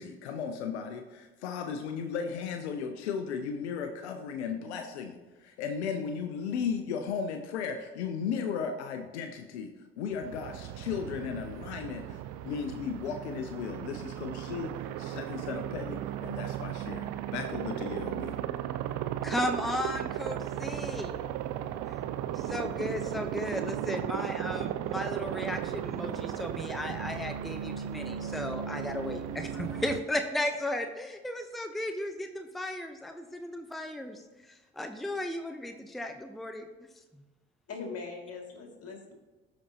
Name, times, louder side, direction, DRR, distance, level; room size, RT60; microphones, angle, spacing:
voice 1, 0.0-9.7 10.0-14.7 15.0-18.4, left 6 dB, 85° left, 6 dB, 0.6 m, -35 dB
Aircraft, 10.1-30.0, right 11 dB, 70° right, 0.5 m, -36 dB
voice 2, 19.2-21.2 21.8-22.0 22.3-36.7, left 1 dB, ahead, 7 dB, 0.7 m, -35 dB
voice 3, 37.7-39.1, left 4 dB, 45° left, 2 dB, 2.2 m, -41 dB
12.5 x 5.1 x 2.8 m, 1.2 s
hypercardioid pair, 50°, 32 cm